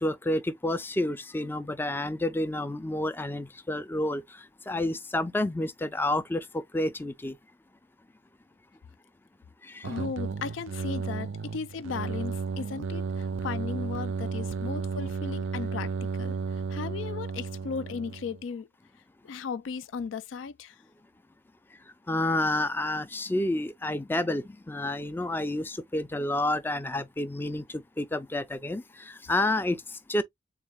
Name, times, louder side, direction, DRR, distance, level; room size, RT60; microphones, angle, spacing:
voice 1, 0.0-7.4 9.6-9.9 22.1-30.2, left 1 dB, 10° left, 0.3 m, -30 dB
voice 2, 9.8-18.7 19.2-20.8, left 5 dB, 85° left, 0.4 m, -36 dB
sound 1, 9.8-18.4, right 5 dB, 85° right, 0.4 m, -33 dB
3.9 x 2.3 x 3.4 m
head